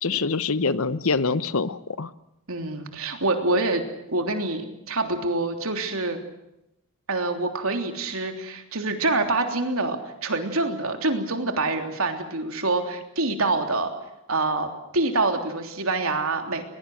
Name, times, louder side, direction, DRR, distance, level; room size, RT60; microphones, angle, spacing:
voice 1, 0.0-2.1, left 4 dB, 70° left, 15 dB, 1.0 m, -25 dB
voice 2, 2.5-3.8 4.1-6.2 7.1-13.9 14.3-14.7 14.9-16.6, right 2 dB, 70° right, 5 dB, 3.3 m, -26 dB
22.0 x 21.5 x 7.9 m, 0.86 s
head